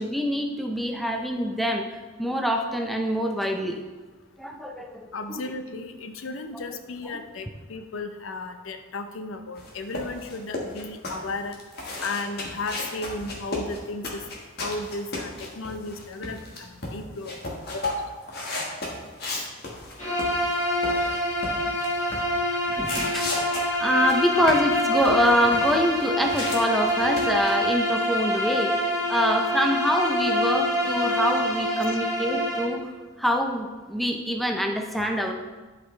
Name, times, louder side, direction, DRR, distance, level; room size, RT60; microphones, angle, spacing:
voice 1, 0.0-1.9 2.2-3.8 4.4-5.4 22.7-23.3 23.8-28.7 29.1-32.8 33.2-35.3, equal, ahead, 2 dB, 0.5 m, -25 dB
voice 2, 5.1-11.6 12.0-14.2 14.6-17.4 17.7-18.2 19.3-19.5 31.9-32.0, left 3 dB, 75° left, 7 dB, 0.6 m, -34 dB
sound 1, 9.6-20.6 20.8-22.3 22.8-26.6 26.8-27.5, left 2 dB, 50° left, 1.5 m, -35 dB
Bowed string instrument, 20.0-32.8, left 1 dB, 35° left, 2.1 m, -26 dB
11.5 x 5.1 x 3.2 m, 1.3 s
head